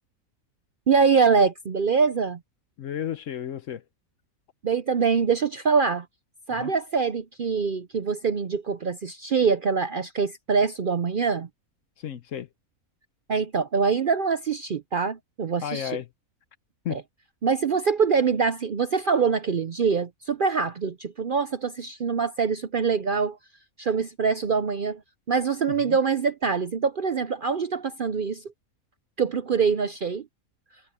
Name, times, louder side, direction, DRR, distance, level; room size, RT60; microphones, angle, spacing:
voice 1, 0.9-2.4 4.6-6.1 6.5-11.5 13.3-16.0 16.9-17.0 17.4-23.4 23.8-25.0 25.3-28.4 29.2-30.2, right 5 dB, 50° right, 0.6 m, -24 dB
voice 2, 2.8-3.8 6.6-6.7 12.0-12.5 15.6-16.1 16.8-17.0 25.7-26.0, left 9 dB, 65° left, 1.1 m, -33 dB
omnidirectional pair, 1.5 m